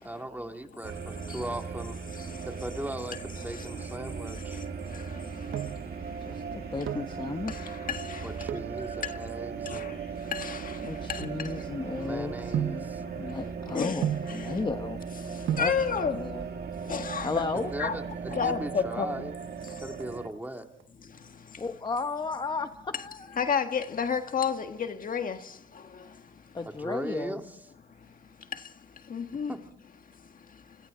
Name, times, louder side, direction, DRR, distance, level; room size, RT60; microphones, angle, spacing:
voice 1, 0.0-2.0 2.5-4.6 8.2-10.1 12.0-13.0 17.5-18.0 18.4-19.3 19.8-20.7 26.6-27.6 29.5-29.6, right 1 dB, 10° right, 2.4 m, -38 dB
sound 1, 0.8-20.3, right 6 dB, 50° right, 1.9 m, -38 dB
sound 2, 5.5-5.9 6.6-7.2 8.4-8.8 9.5-11.9 12.5-12.9 14.0-14.4 15.2-15.3 15.5-15.8 16.9-17.5 17.8-17.9 18.1-18.2 18.6-19.0 19.3-20.4 20.8-21.2 21.6-22.7 23.0-23.1, right 10 dB, 75° right, 1.3 m, -35 dB
voice 2, 6.2-7.7 10.8-15.0 15.5-15.7 16.1-16.4 17.2-17.7 21.6-23.4 26.5-27.4, left 3 dB, 25° left, 1.2 m, -34 dB
voice 3, 15.6-16.2 16.9-17.4 17.8-17.9 18.3-19.1 23.4-24.7 25.0-25.4 29.1-29.5, left 6 dB, 45° left, 1.6 m, -28 dB
29.5 x 25.5 x 3.9 m
cardioid pair, 90°, 20 cm